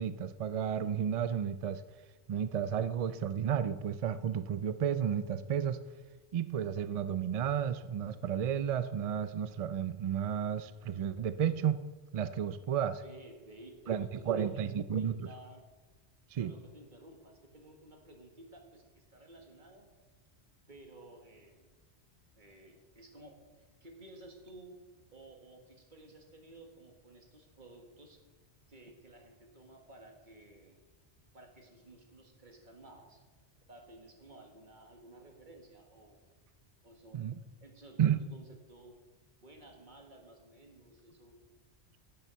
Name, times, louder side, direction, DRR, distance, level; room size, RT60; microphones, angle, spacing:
voice 1, 0.0-1.8 2.3-5.8 6.3-11.8 12.1-13.0 13.9-15.3 16.3-16.5 37.1-37.4 38.0-38.2, right 8 dB, 65° right, 13 dB, 0.3 m, -32 dB
voice 2, 13.0-15.6 16.4-19.9 20.7-21.7 22.4-24.8 25.1-28.2 28.7-30.8 31.3-33.2 33.7-36.2 36.8-37.3 37.6-39.0 39.4-41.3, right 1 dB, 45° right, 2 dB, 1.9 m, -54 dB
10.0 x 7.2 x 6.8 m, 1.3 s
omnidirectional pair, 1.2 m